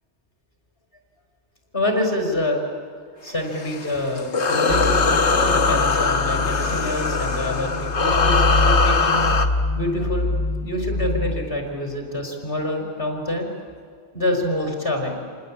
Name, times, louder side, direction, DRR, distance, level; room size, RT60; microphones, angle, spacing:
voice 1, 1.7-2.6 3.2-4.8 5.5-9.2 9.7-10.3 10.6-13.5 14.1-15.2, left 1 dB, 45° left, 2 dB, 5.1 m, -26 dB
sound 1, 3.4-9.5, left 4 dB, 65° left, 1.6 m, -21 dB
sound 2, 4.7-11.6, left 2 dB, 85° left, 2.3 m, -25 dB
27.5 x 19.5 x 8.7 m, 2.2 s
omnidirectional pair, 1.3 m